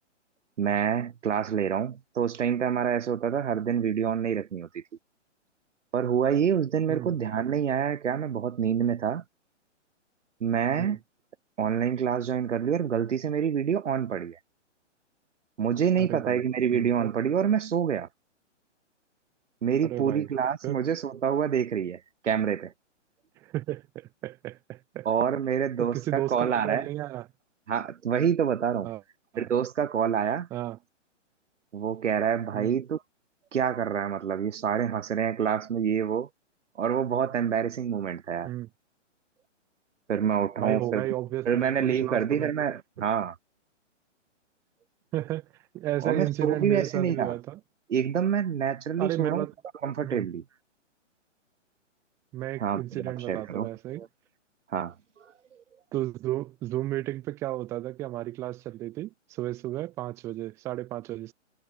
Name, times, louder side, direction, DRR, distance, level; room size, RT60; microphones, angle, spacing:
voice 1, 0.6-4.8 5.9-9.2 10.4-11.0 11.6-14.4 15.6-18.1 19.6-22.7 25.0-26.9 27.7-28.9 29.4-30.5 31.7-33.0 33.5-36.3 36.8-38.5 40.1-41.1 41.5-43.3 46.0-47.4 47.9-49.5 49.8-50.4 52.6-53.7 53.9-54.1 54.7-54.9, right 8 dB, 75° right, 1.4 m, -27 dB
voice 2, 16.0-16.4 16.7-17.1 19.8-20.3 20.6-20.8 23.4-25.1 25.8-27.3 28.8-29.0 29.3-29.5 30.5-30.8 32.5-32.7 38.4-38.7 40.6-42.5 43.0-43.1 45.1-45.4 45.7-47.6 49.0-49.5 50.0-50.3 52.3-54.0 55.9-61.3, right 15 dB, 5° right, 1.1 m, -33 dB
hypercardioid pair, 175°, 37 cm